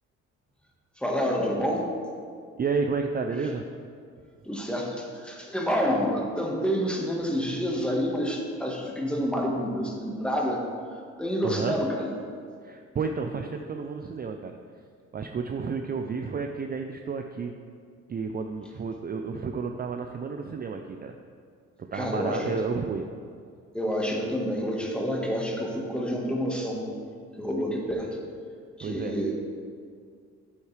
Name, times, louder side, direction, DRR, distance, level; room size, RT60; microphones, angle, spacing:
voice 1, 1.0-1.9 4.4-10.7 11.2-12.1 21.9-22.5 23.7-26.9 27.4-28.2 28.8-29.3, equal, 5° left, -1 dB, 1.5 m, -28 dB
voice 2, 2.6-3.6 11.4-11.8 12.6-14.6 15.1-17.5 18.1-21.1 21.8-23.1 28.8-29.2, right 5 dB, 30° right, 5 dB, 0.5 m, -31 dB
8.4 x 8.2 x 3.3 m, 2.1 s
cardioid pair, 90°, 30 cm